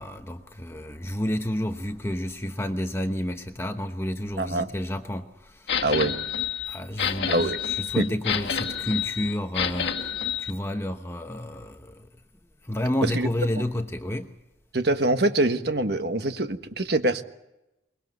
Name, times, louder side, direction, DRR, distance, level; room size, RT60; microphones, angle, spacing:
voice 1, 0.0-5.8 6.7-12.1 12.6-14.3, left 1 dB, 15° left, 1.0 m, -30 dB
voice 2, 4.4-4.7 5.8-6.2 7.3-7.6 8.0-8.1 13.0-13.3 14.7-17.2, right 2 dB, 60° right, 1.4 m, -24 dB
sound 1, 5.7-10.5, left 8 dB, 70° left, 1.7 m, -29 dB
23.0 x 21.5 x 8.0 m
head